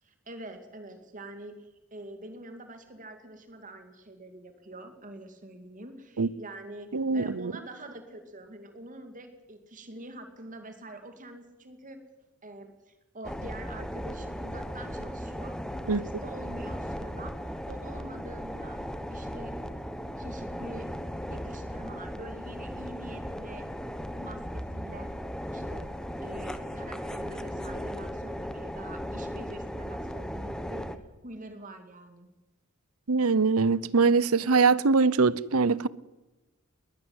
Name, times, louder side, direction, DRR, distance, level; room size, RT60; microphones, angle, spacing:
voice 1, 0.0-12.0 12.4-15.6 15.8-17.3 17.7-18.8 19.1-19.5 20.2-20.9 21.3-23.6 24.2-25.1 25.5-25.9 26.2-30.9 31.2-32.3, right 1 dB, 40° right, 2.4 m, -45 dB
voice 2, 6.9-7.5 15.9-16.0 33.1-35.9, right 4 dB, 85° right, 0.8 m, -23 dB
sound 1, 13.2-31.0, equal, 5° left, 1.2 m, -37 dB
21.5 x 19.5 x 8.1 m
head